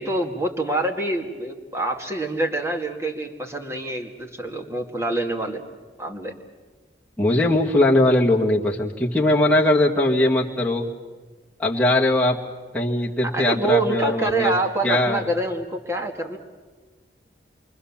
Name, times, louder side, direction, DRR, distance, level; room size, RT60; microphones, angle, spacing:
voice 1, 0.0-5.6 6.0-6.3 13.3-16.4, right 2 dB, 15° right, 2 dB, 2.2 m, -26 dB
voice 2, 7.2-10.8 11.6-12.4 12.7-14.5 14.8-15.2, left 1 dB, 5° left, -4 dB, 1.9 m, -20 dB
28.0 x 23.5 x 7.3 m, 1.4 s
head